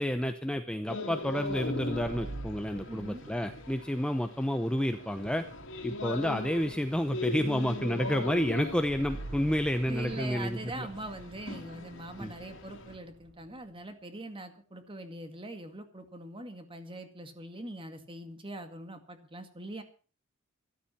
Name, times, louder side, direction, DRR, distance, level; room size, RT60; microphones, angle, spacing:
voice 1, 0.0-5.5 5.8-10.9 12.2-12.3, equal, 5° left, 7 dB, 0.8 m, -30 dB
sound 1, 0.9-12.9, left 2 dB, 60° left, 2.6 m, -40 dB
sound 2, 1.2-13.7, right 2 dB, 50° right, 0.7 m, -47 dB
voice 2, 2.9-3.2 9.5-9.6 9.9-19.8, right 1 dB, 25° right, 7 dB, 2.1 m, -42 dB
13.5 x 13.0 x 5.7 m, 0.38 s
head